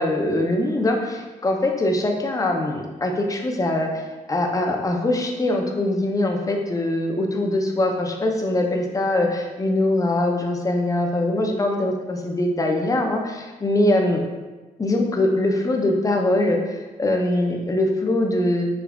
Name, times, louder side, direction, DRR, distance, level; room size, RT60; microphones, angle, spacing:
voice 1, 0.0-4.0 4.3-14.2 14.8-18.7, left 1 dB, 20° left, 2 dB, 0.4 m, -22 dB
3.4 x 2.3 x 2.2 m, 1.2 s
cardioid pair, 70°, 16 cm